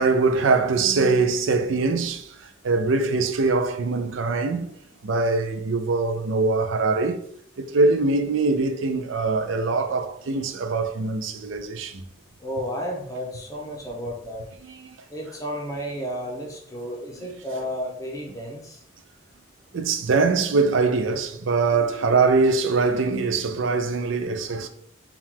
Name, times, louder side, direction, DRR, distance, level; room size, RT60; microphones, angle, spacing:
voice 1, 0.0-2.3 2.6-4.7 5.0-7.2 7.6-12.0 14.6-15.0 17.2-17.3 17.5-17.6 19.7-24.7, right 3 dB, 70° right, 0.4 m, -23 dB
voice 2, 12.4-14.4 15.1-18.8, equal, 15° left, 0.8 m, -32 dB
4.4 x 2.4 x 3.6 m
head